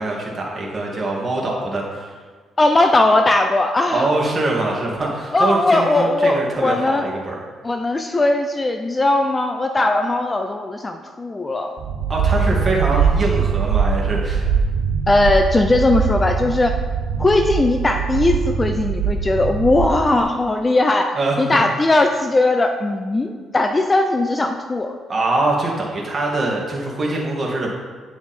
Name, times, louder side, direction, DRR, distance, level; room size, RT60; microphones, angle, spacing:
voice 1, 0.0-2.1 3.9-7.3 12.1-14.5 21.2-21.4 25.1-27.7, right 2 dB, 35° right, -3 dB, 2.6 m, -23 dB
voice 2, 2.6-4.1 5.3-7.1 7.6-11.8 15.1-16.8 17.2-25.0, left 2 dB, 25° left, 5 dB, 0.6 m, -18 dB
sound 1, 11.8-20.2, right 6 dB, 70° right, 0.7 m, -22 dB
10.0 x 6.0 x 4.5 m, 1.5 s
cardioid pair, 90°, 0 cm